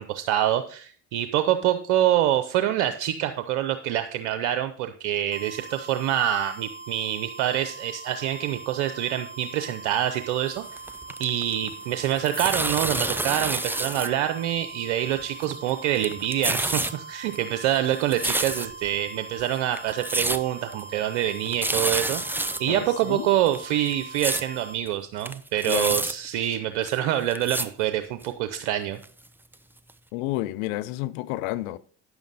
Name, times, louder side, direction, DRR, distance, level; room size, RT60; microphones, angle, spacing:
voice 1, 0.0-10.6 11.2-29.0, right 12 dB, 80° right, 0.8 m, -26 dB
sound 1, 5.3-24.8, right 4 dB, 30° right, 2.3 m, -42 dB
sound 2, 10.6-11.7 12.0-14.1 14.4-14.5 15.2-15.7 16.0-16.9 17.3-18.9 19.4-19.5 19.8-20.4 20.7-20.8 21.2-21.3 21.5-22.6 23.0-23.1 23.5-24.4 24.9-25.0 25.2-26.1 26.9-27.0 27.3-27.7 28.2-28.3 29.0-29.1 29.5-29.6 29.9-30.0, right 2 dB, 5° right, 0.6 m, -28 dB
voice 2, 22.7-23.3 25.7-26.0 30.1-31.8, left 17 dB, 80° left, 0.6 m, -30 dB
9.5 x 7.0 x 4.0 m
hypercardioid pair, 70°, 38 cm